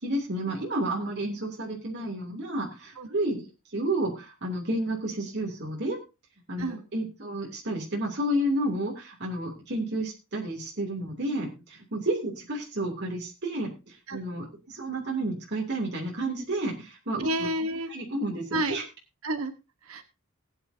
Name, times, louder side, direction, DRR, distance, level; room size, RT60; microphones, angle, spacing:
voice 1, 0.0-3.5 3.7-6.0 6.5-17.3 17.9-18.8, right 1 dB, 55° right, -1 dB, 3.0 m, -31 dB
voice 2, 17.2-17.9 18.5-18.8 19.2-19.5 19.8-20.0, right 1 dB, 80° right, 8 dB, 1.3 m, -30 dB
18.5 x 9.4 x 2.8 m, 0.28 s
head